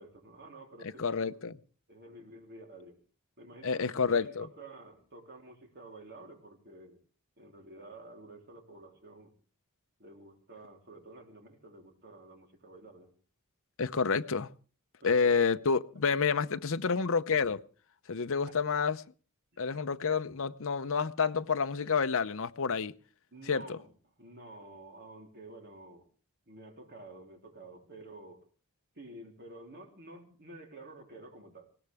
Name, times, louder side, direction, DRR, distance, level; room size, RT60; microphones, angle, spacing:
voice 1, 0.0-1.3 1.9-3.0 3.4-7.0 7.4-9.3 10.0-13.1 15.0-15.6 19.5-19.8 23.3-23.9 24.2-26.1 26.5-28.5 29.0-31.7, right 2 dB, 50° right, 3.5 m, -51 dB
voice 2, 1.0-1.5 3.6-4.5 13.8-14.5 15.0-17.6 18.1-19.0 19.6-22.9 23.5-23.8, left 5 dB, 65° left, 0.7 m, -29 dB
20.0 x 17.5 x 3.5 m
head